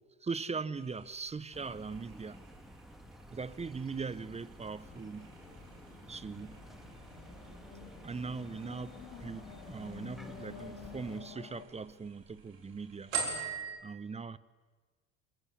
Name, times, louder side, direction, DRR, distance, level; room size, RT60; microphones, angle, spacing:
voice 1, 0.2-2.4 3.3-5.3 6.1-6.6 8.0-13.1 13.8-14.4, right 4 dB, 15° right, 0.9 m, -40 dB
sound 1, 0.7-13.8, right 5 dB, 75° right, 4.3 m, -46 dB
sound 2, 1.5-11.2, equal, ahead, 2.6 m, -52 dB
sound 3, 4.8-11.7, left 7 dB, 70° left, 4.5 m, -51 dB
27.5 x 23.5 x 8.4 m
hypercardioid pair, 70°, 40 cm